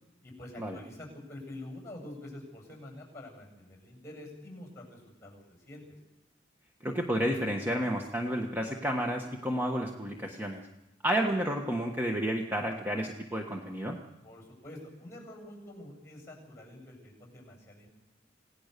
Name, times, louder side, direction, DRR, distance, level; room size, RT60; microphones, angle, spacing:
voice 1, 0.2-5.8 14.2-17.9, left 1 dB, 15° left, 1 dB, 7.9 m, -47 dB
voice 2, 6.8-10.6 11.0-14.0, equal, 10° right, 2 dB, 1.4 m, -31 dB
27.0 x 17.5 x 6.8 m, 1.0 s
head